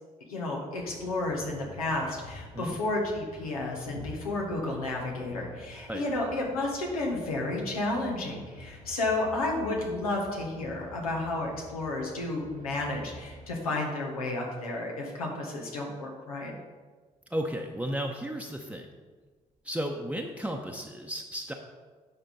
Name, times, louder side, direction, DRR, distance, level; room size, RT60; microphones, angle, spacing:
voice 1, 0.3-16.5, left 2 dB, 85° left, -1 dB, 1.3 m, -32 dB
sound 1, 0.7-13.5, left 1 dB, 90° right, 1.1 m, -49 dB
voice 2, 17.3-18.9 19.6-21.5, equal, 5° right, 1 dB, 0.9 m, -34 dB
9.7 x 5.5 x 4.1 m, 1.4 s
figure-of-eight pair, 40°, 18 cm